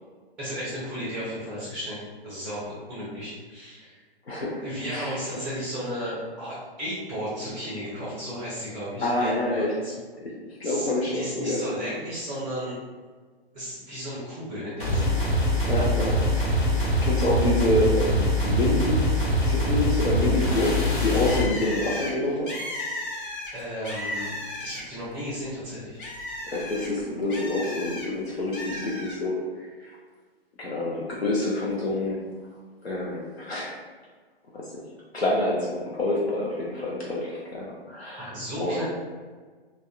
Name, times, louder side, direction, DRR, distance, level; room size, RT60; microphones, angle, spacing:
voice 1, 0.4-4.0 4.6-9.9 10.6-12.8 13.5-15.2 23.5-26.0 38.2-38.9, equal, 5° right, -9 dB, 0.4 m, -34 dB
voice 2, 4.3-4.6 4.9-5.2 9.0-9.8 10.2-11.6 15.7-16.6 17.0-19.1 19.5-22.5 26.5-29.9 30.6-32.2 32.8-33.7 34.5-34.8 35.1-38.3 38.6-38.9, left 1 dB, 90° left, -4 dB, 0.6 m, -27 dB
sound 1, 14.8-21.5, left 1 dB, 20° left, 0.9 m, -23 dB
Bird, 21.3-25.1 25.5-28.1 28.5-29.2, left 1 dB, 55° left, 0.8 m, -35 dB
3.4 x 2.1 x 2.3 m, 1.5 s
figure-of-eight pair, 120°, 31 cm